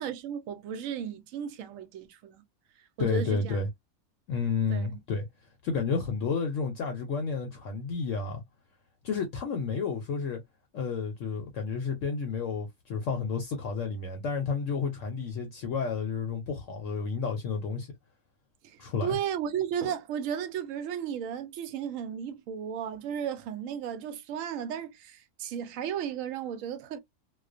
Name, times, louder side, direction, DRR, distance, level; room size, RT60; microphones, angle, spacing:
voice 1, 0.0-2.4 3.0-3.6 4.7-5.0 18.6-27.0, right 8 dB, 70° right, 0.9 m, -34 dB
voice 2, 3.0-3.7 4.3-5.3 5.6-8.4 9.0-10.4 10.7-17.9 18.8-19.2, left 5 dB, 65° left, 0.8 m, -31 dB
2.4 x 2.2 x 2.4 m
omnidirectional pair, 1.6 m